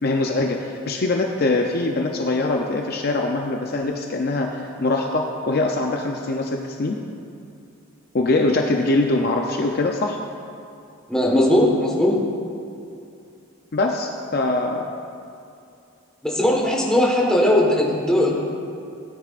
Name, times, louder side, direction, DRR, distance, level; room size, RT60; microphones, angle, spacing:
voice 1, 0.0-7.0 8.1-10.2 13.7-14.9, left 2 dB, 45° left, 2 dB, 0.5 m, -23 dB
voice 2, 11.1-12.2 16.2-18.3, left 1 dB, 5° left, -3 dB, 1.4 m, -18 dB
16.5 x 9.3 x 2.5 m, 2.5 s
head